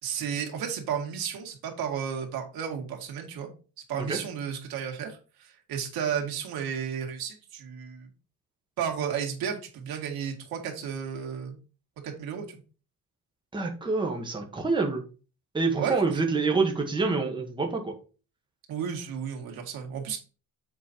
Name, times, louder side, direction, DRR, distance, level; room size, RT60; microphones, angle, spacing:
voice 1, 0.0-3.5 3.9-8.1 8.8-11.6 12.0-12.6 15.8-16.2 18.7-20.2, right 7 dB, 80° right, 2 dB, 2.1 m, -33 dB
voice 2, 13.5-15.0 15.5-18.0, right 4 dB, 15° right, 2 dB, 1.3 m, -27 dB
7.4 x 4.1 x 4.5 m, 0.34 s
cardioid pair, 160°, 35 cm